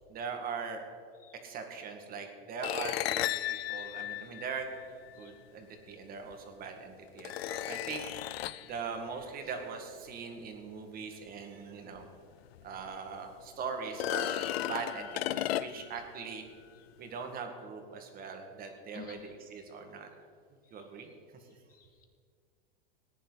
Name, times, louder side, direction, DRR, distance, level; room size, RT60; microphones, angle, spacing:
voice 1, 0.1-0.8 1.4-4.7 5.2-8.0 8.6-12.1 12.6-16.4 17.0-20.1 20.7-21.1, right 5 dB, 30° right, 4 dB, 2.0 m, -41 dB
sound 1, 2.6-5.1 6.3-6.4 7.2-8.7 12.0-12.1 12.6-12.7 13.9-16.0, left 13 dB, 90° left, 0.5 m, -34 dB
voice 2, 21.7-22.0, left 6 dB, 30° left, 4 dB, 2.1 m, -50 dB
19.0 x 10.0 x 4.1 m, 2.2 s
supercardioid pair, 135°, 30 cm